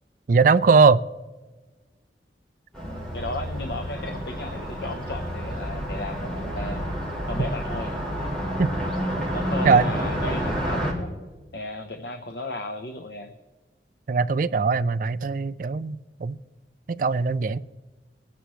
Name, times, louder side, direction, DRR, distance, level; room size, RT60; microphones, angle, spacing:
voice 1, 0.3-1.0 8.6-8.7 9.6-9.9 14.1-16.4 16.9-17.6, right 4 dB, 50° right, 15 dB, 0.4 m, -20 dB
Car passing by, 2.7-10.9, equal, 5° left, 3.2 m, -29 dB
voice 2, 2.8-6.8 7.3-7.9 9.3-11.1 11.5-13.3, left 2 dB, 70° left, 5 dB, 0.9 m, -34 dB
22.0 x 10.0 x 3.1 m, 1.3 s
head